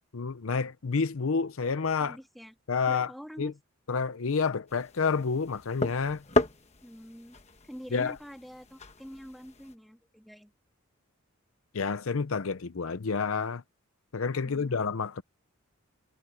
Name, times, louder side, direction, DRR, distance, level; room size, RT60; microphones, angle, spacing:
voice 1, 0.1-2.2 2.7-3.1 3.4-3.5 3.9-6.2 7.9-8.1 11.7-13.6 14.1-15.2, left 5 dB, 70° left, 0.6 m, -29 dB
voice 2, 2.0-2.5 2.9-3.6 6.8-7.4 7.6-10.5 14.4-14.9, equal, ahead, 2.9 m, -46 dB
sound 1, 4.7-9.8, left 2 dB, 30° left, 1.2 m, -34 dB
head